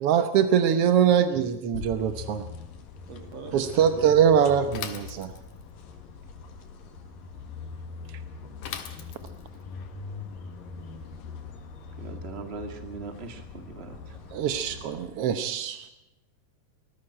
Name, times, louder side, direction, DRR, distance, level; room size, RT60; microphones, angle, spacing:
voice 1, 0.0-2.5 3.5-5.3 14.3-15.9, right 8 dB, 70° right, 9 dB, 1.4 m, -23 dB
sound 1, 1.7-15.1, left 4 dB, 85° left, 3.3 m, -42 dB
voice 2, 3.1-4.5, right 4 dB, 55° right, 5 dB, 3.2 m, -43 dB
Bicycle / Mechanisms, 4.7-5.7 8.6-9.5, left 8 dB, 65° left, 2.9 m, -38 dB
voice 3, 12.0-14.2, right 4 dB, 20° right, 5 dB, 2.0 m, -40 dB
19.5 x 15.0 x 8.8 m, 0.93 s
omnidirectional pair, 3.9 m